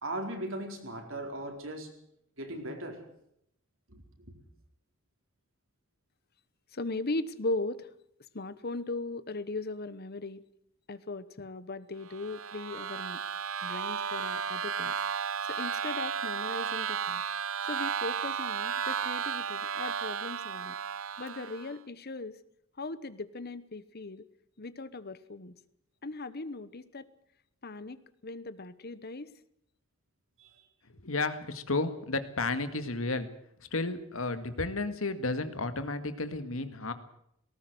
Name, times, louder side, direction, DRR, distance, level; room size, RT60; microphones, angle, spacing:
voice 1, 0.0-1.9 2.4-3.0 3.9-4.3 30.4-30.6, right 1 dB, 70° right, 4 dB, 4.4 m, -38 dB
voice 2, 6.7-7.9 8.3-10.4 10.9-13.2 13.6-14.9 15.5-17.2 17.7-20.7 21.2-22.4 22.8-24.2 24.6-25.5 26.0-27.1 27.6-29.3, left 2 dB, 50° left, 15 dB, 1.1 m, -38 dB
sound 1, 12.1-21.7, right 7 dB, 85° right, 0.7 m, -34 dB
voice 3, 30.9-33.3 33.7-36.9, left 3 dB, 80° left, 10 dB, 2.0 m, -32 dB
19.0 x 18.5 x 7.9 m, 0.75 s
head